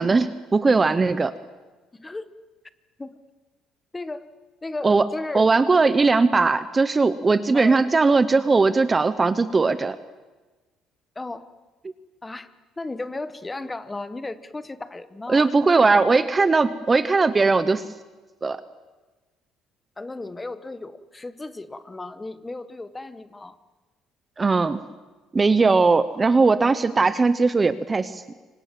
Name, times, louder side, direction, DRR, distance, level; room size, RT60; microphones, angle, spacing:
voice 1, 0.0-1.3 4.8-5.1 5.3-10.0 15.3-17.8 18.4-18.6 24.4-24.8 25.3-28.2, right 4 dB, 15° right, 13 dB, 0.8 m, -19 dB
voice 2, 3.9-4.2 4.6-5.5 7.5-7.8 11.1-11.5 12.2-12.5 12.8-15.5 20.0-23.6, left 2 dB, 10° left, 13 dB, 1.1 m, -34 dB
29.5 x 25.0 x 7.5 m, 1.2 s
cardioid pair, 165°, 0 cm